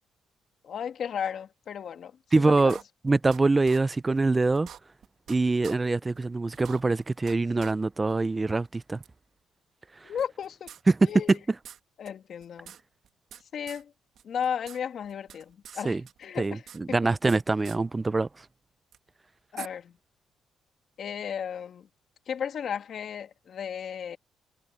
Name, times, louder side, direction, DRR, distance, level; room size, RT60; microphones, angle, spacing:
voice 1, 0.6-2.2 2.5-2.8 10.0-10.7 11.0-11.4 12.0-12.7 13.5-13.9 14.2-17.0 19.5-20.0 21.0-21.9 22.3-24.2, left 8 dB, 60° left, 2.4 m, -34 dB
voice 2, 2.3-2.8 3.0-4.7 5.3-9.0 10.0-10.1 10.9-11.4 15.8-16.0 16.4-18.3, right 3 dB, 20° right, 0.5 m, -24 dB
sound 1, 2.7-3.4 3.7-3.8 4.2-4.3 4.5-5.4 5.6-5.8 6.2-6.3 6.5-7.3 7.6-7.7 8.1-8.2 9.0-9.1 10.2-11.4 11.6-11.8 12.1-12.2 12.4-13.4 13.7-13.8 14.2-14.8 15.0-15.8 16.1-17.4 17.6-17.8 18.9-19.0 19.6-19.7, right 9 dB, 70° right, 1.8 m, -46 dB
cardioid pair, 90°, 0 cm